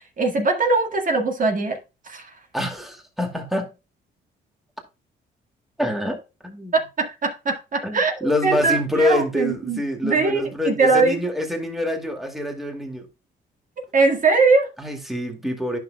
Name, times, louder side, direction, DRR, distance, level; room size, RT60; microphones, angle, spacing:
voice 1, 0.2-1.8 2.1-2.3 6.7-8.1 8.4-11.2 13.9-14.7, right 3 dB, 40° right, 1.8 m, -21 dB
voice 2, 2.5-3.7 5.8-6.2 6.4-6.8 7.8-13.1 14.8-15.8, left 1 dB, ahead, 2.2 m, -26 dB
11.0 x 5.9 x 2.3 m
cardioid pair, 90°, 20 cm